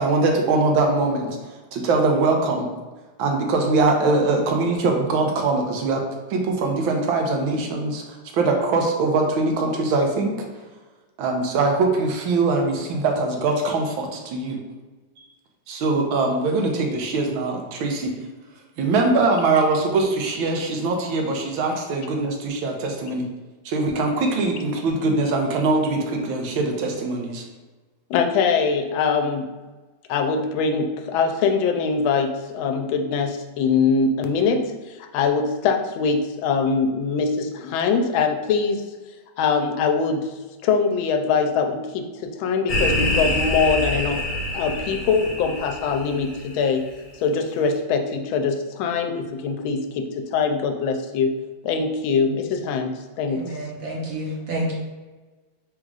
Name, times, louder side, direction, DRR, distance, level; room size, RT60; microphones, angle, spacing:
voice 1, 0.0-2.7 3.2-6.0 6.3-10.5 11.2-14.6 15.7-18.1 18.8-23.3 23.6-27.4, right 3 dB, 85° right, 2 dB, 1.5 m, -22 dB
voice 2, 28.1-29.4 30.1-38.8 39.4-40.3 40.6-44.2 44.5-46.8 47.2-51.3 51.6-53.4, left 5 dB, 90° left, 5 dB, 1.4 m, -23 dB
sound 1, 42.7-46.6, left 1 dB, 55° left, 1.2 m, -26 dB
voice 3, 53.3-54.7, right 1 dB, 55° right, -3 dB, 1.1 m, -29 dB
4.0 x 2.4 x 4.7 m, 1.2 s
omnidirectional pair, 2.1 m